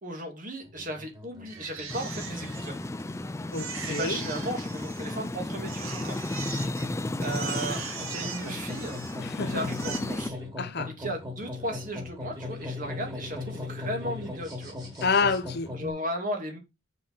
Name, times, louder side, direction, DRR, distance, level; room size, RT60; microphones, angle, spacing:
voice 1, 0.0-2.8 3.8-6.2 7.2-9.0 9.5-10.4 10.8-14.7 15.7-16.6, right 1 dB, 40° right, 2.6 m, -35 dB
sound 1, 0.6-15.9, left 3 dB, 20° right, 3.9 m, -40 dB
Crying sobbing, 1.5-3.1 3.5-5.3 5.7-6.9 7.2-9.3 9.6-10.0, right 6 dB, 90° right, 2.0 m, -40 dB
sound 2, 1.9-10.3, left 2 dB, 15° left, 0.4 m, -34 dB
voice 2, 3.5-4.2 9.2-9.6 10.6-10.9 15.0-16.0, left 4 dB, 50° left, 0.9 m, -28 dB
6.7 x 6.1 x 5.5 m
head